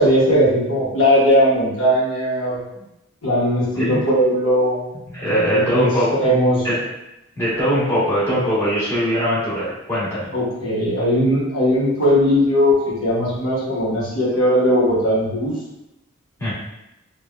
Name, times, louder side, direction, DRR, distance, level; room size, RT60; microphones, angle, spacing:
voice 1, 0.0-2.6 3.2-4.8 5.3-6.7 10.3-15.5, equal, 70° left, -8 dB, 0.9 m, -18 dB
voice 2, 5.1-6.2 6.6-6.8 7.4-10.3 16.4-16.5, equal, 15° left, -12 dB, 1.2 m, -21 dB
3.2 x 2.2 x 2.4 m, 0.90 s
head